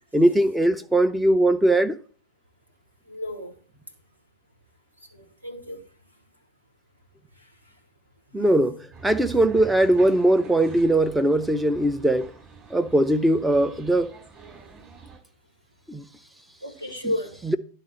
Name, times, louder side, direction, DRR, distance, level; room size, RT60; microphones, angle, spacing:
voice 1, 0.1-2.0 8.3-12.3 12.7-14.1 15.9-16.1 17.5-17.6, right 1 dB, 5° right, 0.7 m, -20 dB
voice 2, 3.1-3.5 5.1-5.8 8.4-8.6 16.6-17.4, left 1 dB, 85° right, 1.7 m, -32 dB
sound 1, 8.9-15.2, right 5 dB, 40° right, 6.0 m, -45 dB
11.0 x 4.1 x 7.2 m
figure-of-eight pair, 90°, 0 cm